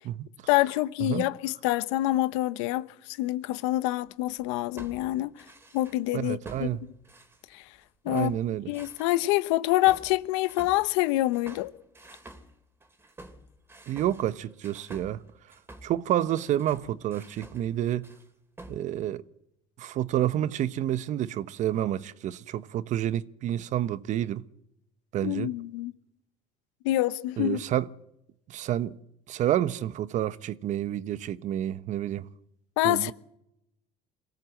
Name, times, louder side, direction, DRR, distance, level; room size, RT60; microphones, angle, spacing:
voice 1, 0.5-5.4 5.7-6.7 7.5-7.6 8.0-8.4 8.7-11.7 25.2-25.9 26.8-27.6 32.8-33.1, left 16 dB, 85° left, 1.0 m, -26 dB
sound 1, 4.3-6.1 6.5-7.8 8.2-9.3 9.9-17.7 18.0-18.3 18.6-18.8, right 1 dB, 15° right, 3.1 m, -49 dB
voice 2, 6.1-6.8 8.1-8.7 13.9-15.2 15.8-18.1 18.7-19.2 19.8-24.4 25.1-25.5 27.4-27.9 28.5-29.0 29.3-32.3 32.8-33.1, right 12 dB, 55° right, 1.0 m, -29 dB
23.5 x 17.0 x 7.8 m
supercardioid pair, 95°, 15 cm